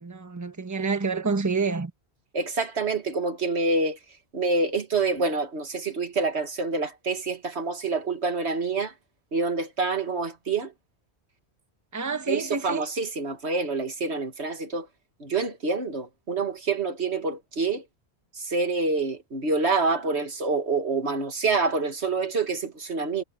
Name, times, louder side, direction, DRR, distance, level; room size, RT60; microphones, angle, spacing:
voice 1, 0.0-1.9 11.9-12.9, right 4 dB, 15° right, 1.2 m, -28 dB
voice 2, 2.3-4.0 4.3-8.9 9.3-10.7 12.3-14.9 15.2-17.8 18.4-23.2, right 3 dB, 75° right, 2.1 m, -27 dB
omnidirectional pair, 1.1 m